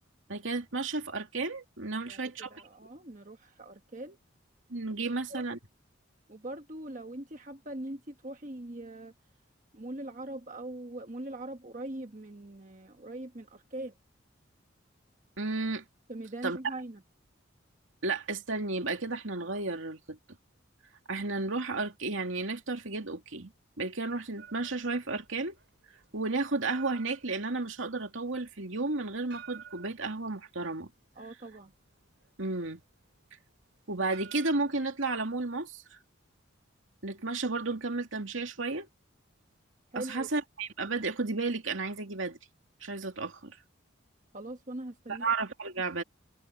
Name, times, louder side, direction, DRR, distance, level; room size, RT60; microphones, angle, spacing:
voice 1, 0.3-2.6 4.7-5.6 15.4-15.8 16.4-16.6 18.0-20.2 21.1-23.5 23.8-25.6 26.1-30.9 32.4-32.8 33.9-36.0 37.0-38.9 39.9-42.4 42.8-43.6 45.1-46.0, right 3 dB, 75° right, 2.5 m, -33 dB
voice 2, 2.1-4.2 5.3-5.4 6.3-9.1 9.7-13.9 16.1-17.0 31.1-31.7 39.9-40.3 44.3-45.3, right 1 dB, 40° right, 1.3 m, -41 dB
sound 1, 24.4-35.7, right 8 dB, 55° right, 5.3 m, -53 dB
head